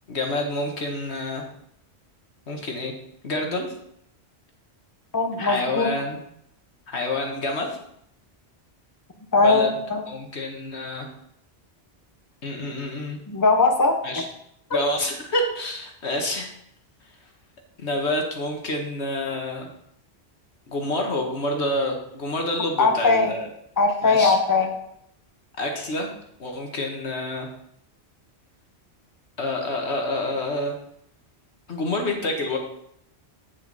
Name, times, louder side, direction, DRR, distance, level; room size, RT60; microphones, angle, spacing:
voice 1, 0.1-1.4 2.5-2.9 3.2-3.7 5.4-6.2 6.9-7.7 9.4-9.7 10.1-11.1 12.4-13.2 14.0-14.2 14.7-16.5 17.8-19.7 20.7-23.4 24.0-24.3 25.6-26.1 26.4-27.5 29.4-30.8 31.7-32.6, left 1 dB, 85° left, 2 dB, 1.8 m, -28 dB
voice 2, 5.1-5.9 9.3-10.0 13.3-14.3 22.8-23.3 23.8-24.7, left 3 dB, 20° left, 4 dB, 0.9 m, -20 dB
8.5 x 7.7 x 4.1 m, 0.74 s
omnidirectional pair, 1.1 m